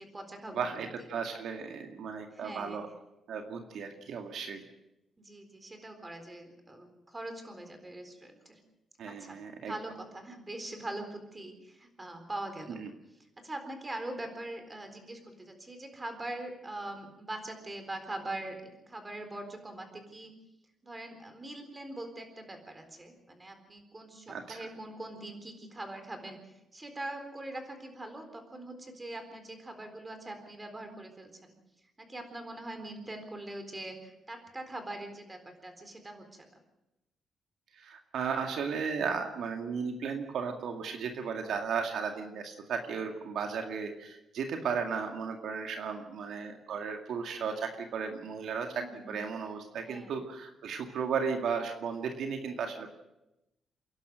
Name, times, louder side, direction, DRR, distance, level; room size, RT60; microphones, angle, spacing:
voice 1, 0.0-0.9 2.3-2.8 5.2-8.6 9.1-12.8 13.4-20.3 20.8-31.6 32.1-36.5 45.7-46.0 48.7-49.2 49.8-50.2, right 1 dB, 20° right, 6 dB, 4.0 m, -42 dB
voice 2, 0.5-2.9 3.3-4.6 9.0-9.7 12.7-12.9 24.3-24.6 37.8-52.9, right 6 dB, 75° right, 4 dB, 2.1 m, -35 dB
28.5 x 11.5 x 7.8 m, 0.91 s
cardioid pair, 110°, 0 cm